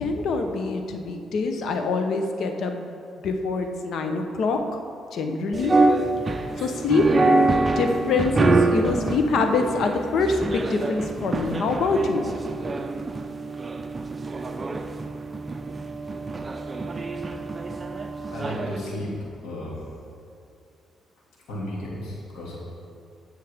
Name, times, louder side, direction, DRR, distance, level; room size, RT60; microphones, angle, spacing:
voice 1, 0.0-2.9 3.2-4.6 5.1-5.7 6.3-7.1 7.7-12.2, left 3 dB, 70° left, 5 dB, 1.0 m, -25 dB
sound 1, 5.5-18.8, right 3 dB, 30° right, 0.6 m, -25 dB
voice 2, 18.3-19.1 19.4-19.8 21.5-22.6, left 1 dB, 85° left, -4 dB, 2.4 m, -33 dB
16.0 x 6.4 x 3.6 m, 2.5 s
cardioid pair, 90°, 0 cm